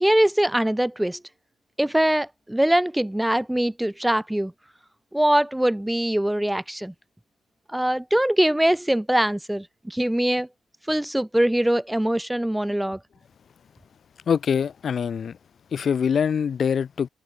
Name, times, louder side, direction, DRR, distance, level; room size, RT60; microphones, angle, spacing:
voice 1, 0.0-1.2 1.8-4.5 5.1-6.9 7.7-10.5 10.9-13.0, right 1 dB, 5° right, 0.6 m, -22 dB
voice 2, 14.3-15.4 15.7-17.1, left 7 dB, 50° left, 1.3 m, -24 dB
cardioid pair, 90°, 0 cm